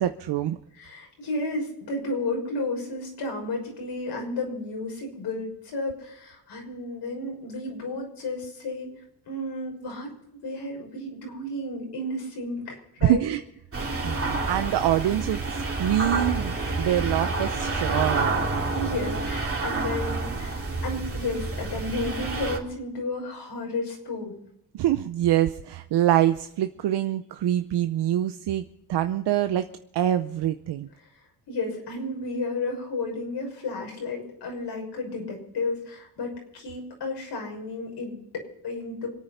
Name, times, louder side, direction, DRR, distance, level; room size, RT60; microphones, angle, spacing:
voice 1, 0.0-0.6 13.0-13.4 14.0-18.3 24.7-29.7 29.9-30.9, right 12 dB, 90° right, 9 dB, 0.7 m, -25 dB
voice 2, 0.7-8.9 9.3-10.1 10.4-13.2 18.7-24.3 31.5-39.1, left 2 dB, 85° left, 1 dB, 6.1 m, -32 dB
sound 1, 13.7-22.6, right 3 dB, 35° right, 3.1 m, -28 dB
26.0 x 9.2 x 5.7 m, 0.79 s
cardioid pair, 90°, 40 cm